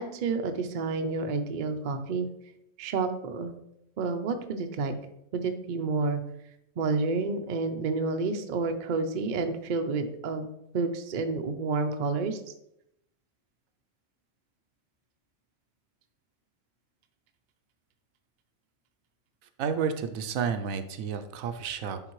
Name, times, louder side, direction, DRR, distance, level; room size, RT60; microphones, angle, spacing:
voice 1, 0.0-2.3 2.8-3.6 4.0-4.9 5.3-6.2 6.8-10.4 10.7-12.4, right 4 dB, 50° right, 6 dB, 0.6 m, -29 dB
voice 2, 19.6-22.0, right 6 dB, 80° right, 8 dB, 1.0 m, -31 dB
10.0 x 3.7 x 3.1 m, 0.79 s
omnidirectional pair, 1.4 m